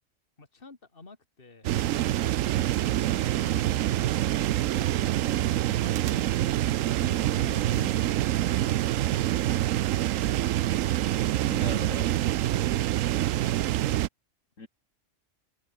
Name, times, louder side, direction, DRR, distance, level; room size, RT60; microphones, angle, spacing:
voice 1, 0.4-1.7 3.3-7.7 8.5-9.2, left 3 dB, 45° left, 2.9 m, -50 dB
sound 1, 1.6-14.1, right 13 dB, 85° right, 1.0 m, -26 dB
voice 2, 7.6-8.0 11.5-12.1 14.6-14.7, left 3 dB, 80° left, 3.5 m, -39 dB
omnidirectional pair, 1.3 m